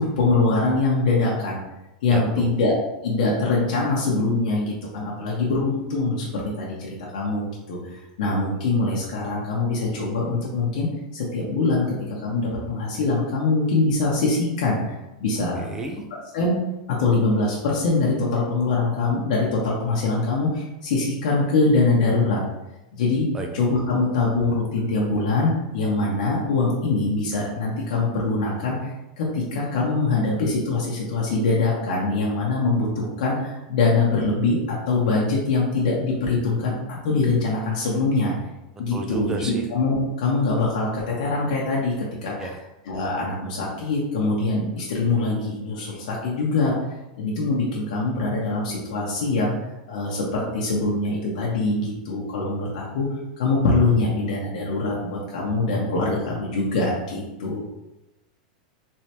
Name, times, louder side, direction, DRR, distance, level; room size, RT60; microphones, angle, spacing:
voice 1, 0.0-1.6 2.0-2.7 3.0-7.8 8.2-10.9 11.1-11.9 12.2-15.7 16.3-16.6 17.0-22.4 22.9-23.2 23.5-38.3 38.8-41.9 42.2-42.6 42.8-46.7 47.2-49.5 49.9-53.1 53.4-57.6, left 3 dB, 70° left, -4 dB, 0.9 m, -23 dB
voice 2, 2.1-2.5 15.6-16.0 23.3-23.5 38.9-39.7 42.4-42.6, right 2 dB, 10° right, 2 dB, 0.5 m, -32 dB
3.6 x 3.3 x 2.9 m, 0.97 s
supercardioid pair, 150°, 4 cm